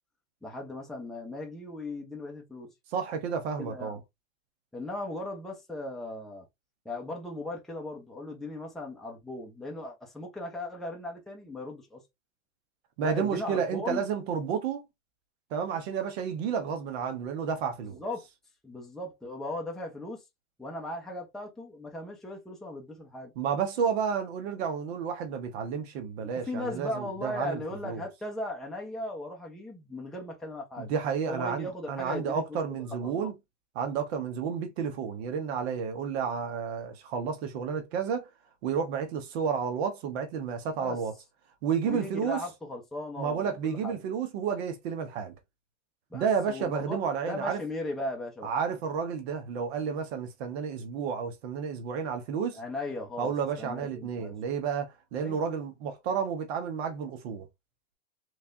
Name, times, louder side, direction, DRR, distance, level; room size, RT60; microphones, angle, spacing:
voice 1, 0.4-2.7 3.6-4.0 4.7-6.5 6.8-12.0 13.0-14.0 17.9-18.3 18.6-20.2 20.6-23.3 26.2-30.9 31.3-33.3 40.8-41.0 41.8-44.0 46.1-47.0 47.3-48.5 52.5-54.3 55.2-55.4, left 1 dB, ahead, 0.8 m, -37 dB
voice 2, 2.9-4.0 13.0-14.9 15.5-18.0 23.4-28.0 30.8-33.3 33.7-38.3 38.6-41.1 41.6-42.4 43.2-45.3 46.1-47.6 48.4-52.6 53.2-57.5, right 6 dB, 50° right, 1.0 m, -31 dB
3.5 x 3.2 x 2.6 m
hypercardioid pair, 125°, 40 cm